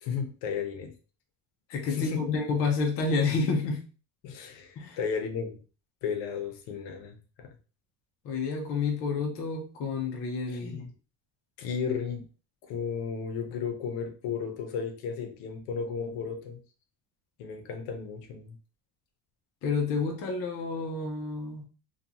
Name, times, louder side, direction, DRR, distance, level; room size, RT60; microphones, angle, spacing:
voice 1, 0.0-0.9 1.9-2.2 4.2-5.6 6.0-7.5 10.5-10.8 11.6-12.2 12.6-16.6 17.4-18.6, left 6 dB, 70° left, 6 dB, 0.7 m, -34 dB
voice 2, 1.7-3.8 4.8-5.0 8.2-10.9 19.6-21.6, left 4 dB, 35° left, 1 dB, 0.4 m, -29 dB
2.5 x 2.3 x 2.7 m, 0.36 s
cardioid pair, 170°, 41 cm